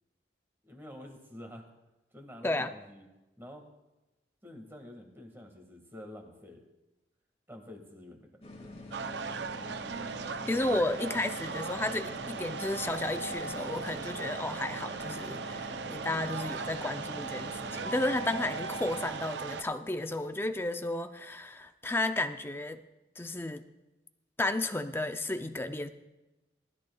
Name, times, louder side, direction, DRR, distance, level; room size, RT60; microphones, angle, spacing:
voice 1, 0.6-1.7 2.1-3.1 3.4-3.7 4.4-6.7 7.5-8.8 10.4-11.0, left 1 dB, 15° right, 3 dB, 1.7 m, -48 dB
sound 1, 8.4-19.1, left 2 dB, 35° left, 1.8 m, -46 dB
sound 2, 8.9-19.6, right 5 dB, 70° right, 0.6 m, -38 dB
voice 2, 10.5-22.8 23.2-23.7 24.4-25.9, left 2 dB, 15° left, 8 dB, 0.5 m, -33 dB
19.5 x 13.0 x 2.3 m, 1.0 s
head